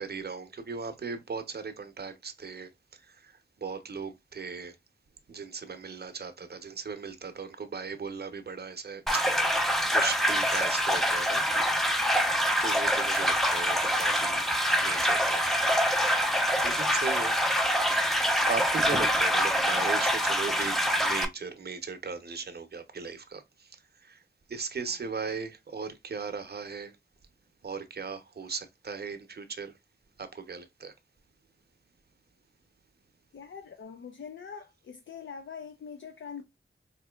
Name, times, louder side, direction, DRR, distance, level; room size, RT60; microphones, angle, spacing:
voice 1, 0.0-4.8 5.3-9.3 9.9-11.4 12.6-14.5 14.8-15.5 16.6-17.4 17.9-18.1 18.4-24.2 24.5-26.9 27.6-29.8 30.2-30.9, right 5 dB, 55° right, 0.7 m, -38 dB
sound 1, 9.1-21.3, equal, ahead, 0.6 m, -25 dB
voice 2, 33.3-36.4, left 6 dB, 70° left, 0.5 m, -43 dB
4.4 x 2.7 x 2.3 m
wide cardioid pair, 70°, 20 cm